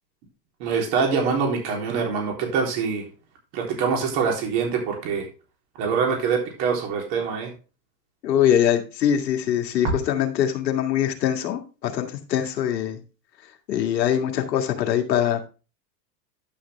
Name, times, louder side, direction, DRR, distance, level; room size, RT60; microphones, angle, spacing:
voice 1, 0.6-3.0 3.5-5.3 5.8-7.5, right 5 dB, 60° right, 1 dB, 3.6 m, -24 dB
voice 2, 8.2-13.0 13.7-15.5, left 10 dB, 90° left, 4 dB, 2.0 m, -23 dB
11.0 x 6.7 x 3.4 m, 0.33 s
supercardioid pair, 115°, 49 cm